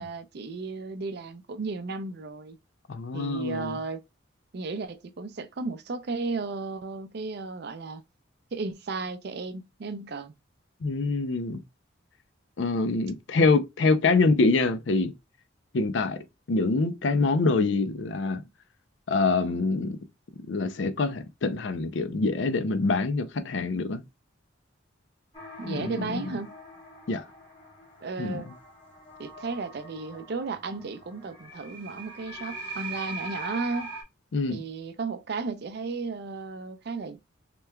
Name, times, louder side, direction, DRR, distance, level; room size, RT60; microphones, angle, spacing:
voice 1, 0.0-2.6 3.1-4.0 4.5-8.0 8.5-10.3 25.6-26.6 28.0-28.5 29.2-33.9 34.5-37.2, right 3 dB, 55° right, 0.4 m, -34 dB
voice 2, 2.9-3.8 10.8-11.6 12.6-15.1 15.7-16.2 16.5-18.4 19.1-20.0 20.5-24.0 25.6-26.3 27.1-27.2 28.2-28.4 34.3-34.6, left 3 dB, 60° left, 0.5 m, -25 dB
sound 1, 25.3-34.0, right 3 dB, 20° left, 1.4 m, -42 dB
3.4 x 3.0 x 2.2 m
head